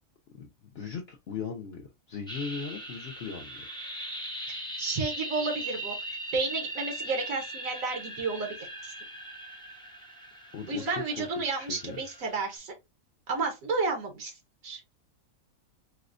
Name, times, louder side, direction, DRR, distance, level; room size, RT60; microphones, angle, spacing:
voice 1, 0.3-3.7 10.5-12.0, left 6 dB, 60° left, 0.7 m, -39 dB
sound 1, 2.3-12.6, right 1 dB, 5° left, 0.4 m, -40 dB
voice 2, 4.5-8.6 8.8-8.9 10.7-12.7 13.3-14.3 14.6-14.8, right 3 dB, 80° right, 1.3 m, -32 dB
4.8 x 2.0 x 2.4 m
omnidirectional pair, 1.4 m